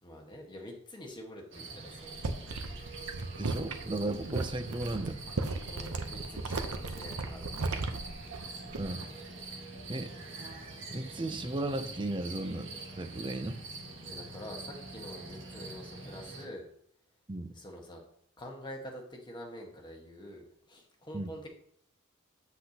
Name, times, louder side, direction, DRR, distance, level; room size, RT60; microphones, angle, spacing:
voice 1, 0.0-2.2 5.6-7.9 14.0-16.7 17.5-18.0 18.4-21.5, equal, 20° left, 0 dB, 1.5 m, -46 dB
sound 1, 1.5-16.5, right 3 dB, 55° right, 1.9 m, -45 dB
sound 2, 2.0-9.1 9.4-9.8, right 3 dB, 85° right, 0.9 m, -36 dB
voice 2, 3.4-5.2 8.8-9.1 9.9-10.1 10.9-13.6 17.3-17.5 21.1-21.3, right 2 dB, 20° right, 10 dB, 0.5 m, -35 dB
8.1 x 7.9 x 2.9 m, 0.67 s
head